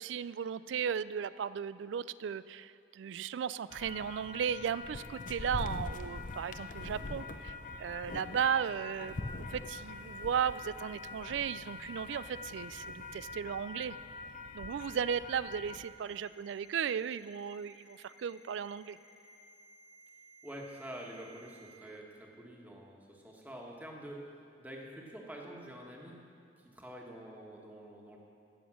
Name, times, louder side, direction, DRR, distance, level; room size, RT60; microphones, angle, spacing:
voice 1, 0.0-9.2 9.5-14.0 14.5-19.0, right 7 dB, 75° right, 17 dB, 0.3 m, -36 dB
sound 1, 3.7-15.9, left 3 dB, 45° left, 0.6 m, -43 dB
Ringtone, 15.8-21.8, right 1 dB, 80° left, 3.4 m, -59 dB
voice 2, 20.4-24.3 24.6-26.2 26.6-28.2, right 1 dB, 10° right, -1 dB, 1.5 m, -47 dB
16.5 x 7.1 x 6.2 m, 2.5 s
head